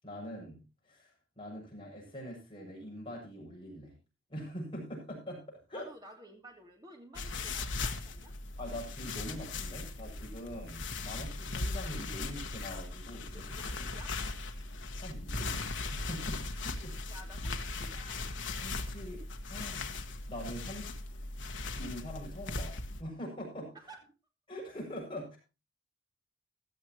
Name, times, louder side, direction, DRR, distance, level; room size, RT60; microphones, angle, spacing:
voice 1, 0.0-3.9 4.3-5.9 8.6-13.4 13.8-13.9 15.0-15.5 15.9-16.9 18.6-19.2 19.5-19.8 20.3-20.9 21.7-23.7 24.5-25.4, equal, 25° left, -3 dB, 7.3 m, -43 dB
voice 2, 5.7-8.3 13.3-14.1 16.5-16.6 17.1-18.2 23.7-24.0, right 1 dB, 20° right, 2 dB, 2.8 m, -52 dB
sound 1, 7.1-23.0, left 3 dB, 60° left, 1.4 m, -38 dB
16.0 x 13.0 x 3.0 m, 0.29 s
head